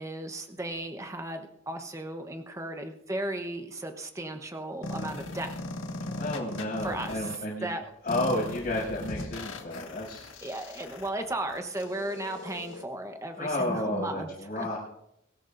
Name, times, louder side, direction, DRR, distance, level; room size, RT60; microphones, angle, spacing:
voice 1, 0.0-5.5 6.8-7.8 10.4-14.3 14.5-14.8, right 1 dB, 15° right, 6 dB, 1.0 m, -35 dB
sound 1, 4.8-7.3 8.1-12.8, left 2 dB, 80° left, 1.7 m, -39 dB
voice 2, 6.1-7.7 8.0-10.3 13.3-14.8, left 1 dB, 40° left, -8 dB, 6.0 m, -31 dB
22.5 x 14.0 x 2.6 m, 0.81 s
head